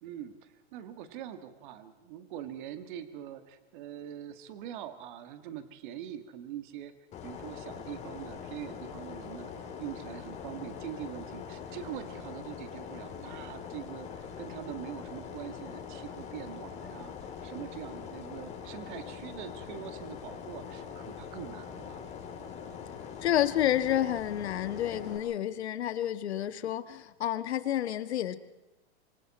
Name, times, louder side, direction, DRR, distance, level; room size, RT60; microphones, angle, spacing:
voice 1, 0.0-6.9 7.2-17.2 17.4-22.0, right 10 dB, 45° right, 9 dB, 1.8 m, -43 dB
sound 1, 7.1-25.2, left 7 dB, 20° left, 3.0 m, -43 dB
voice 2, 23.2-28.4, left 11 dB, 75° left, 10 dB, 1.6 m, -29 dB
26.5 x 25.0 x 4.3 m, 1.0 s
hypercardioid pair, 150°, 33 cm